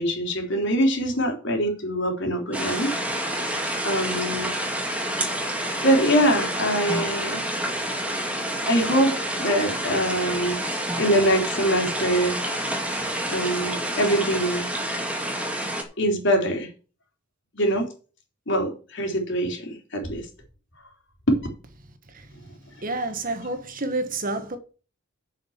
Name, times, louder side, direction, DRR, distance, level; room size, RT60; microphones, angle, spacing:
voice 1, 0.0-2.9 3.8-4.5 5.8-7.4 8.7-10.6 11.0-12.4 13.3-14.7 16.0-16.7 17.5-17.9 18.5-20.2 21.3-21.4, equal, 60° left, 3.4 m, -23 dB
sound 1, 2.5-15.8, right 1 dB, 5° right, 1.9 m, -28 dB
voice 2, 22.8-24.6, right 2 dB, 45° right, 1.4 m, -29 dB
7.2 x 6.5 x 7.2 m
head